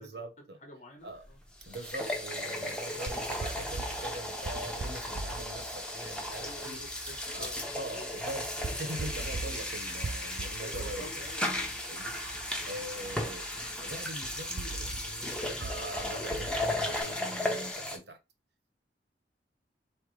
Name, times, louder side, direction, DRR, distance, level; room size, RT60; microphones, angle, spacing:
voice 1, 0.0-0.6 1.0-1.3 1.6-6.8 7.3-11.2 11.9-12.2 12.6-13.5 13.8-18.2, right 1 dB, 70° right, 1.0 m, -43 dB
voice 2, 0.6-1.4 6.3-7.5 7.9-8.1 10.6-12.0, left 1 dB, 40° left, 1.2 m, -48 dB
sound 1, 1.2-1.3 1.6-18.0, left 1 dB, 5° left, 0.9 m, -35 dB
sound 2, 3.1-17.0, right 3 dB, 45° right, 0.4 m, -43 dB
4.4 x 3.3 x 3.2 m
head